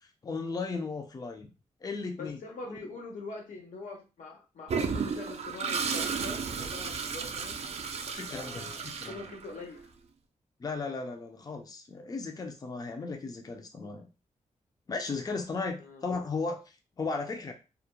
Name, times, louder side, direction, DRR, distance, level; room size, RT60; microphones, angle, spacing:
voice 1, 0.2-1.5 1.8-2.4 2.7-2.8 8.1-9.2 10.6-14.1 14.9-16.6 17.0-17.5, left 4 dB, 30° left, 5 dB, 0.4 m, -35 dB
voice 2, 2.2-7.6 8.3-9.9 15.8-16.0, left 3 dB, 90° left, 1 dB, 0.7 m, -43 dB
Toilet flush, 4.7-9.7, right 5 dB, 55° right, 0.4 m, -34 dB
2.3 x 2.1 x 2.9 m, 0.30 s
wide cardioid pair, 110°, 13 cm